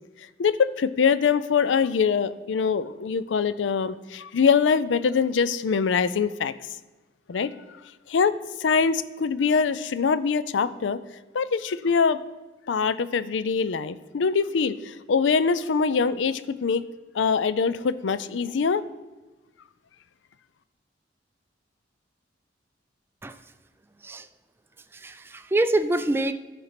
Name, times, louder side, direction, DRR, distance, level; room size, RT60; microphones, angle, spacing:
voice 1, 0.4-6.5 7.3-7.5 8.1-11.0 11.3-12.2 12.7-16.8 17.1-18.8, left 5 dB, 85° left, 14 dB, 0.4 m, -23 dB
voice 2, 25.0-26.3, right 2 dB, 15° right, 9 dB, 0.3 m, -25 dB
13.5 x 4.4 x 5.8 m, 1.2 s
head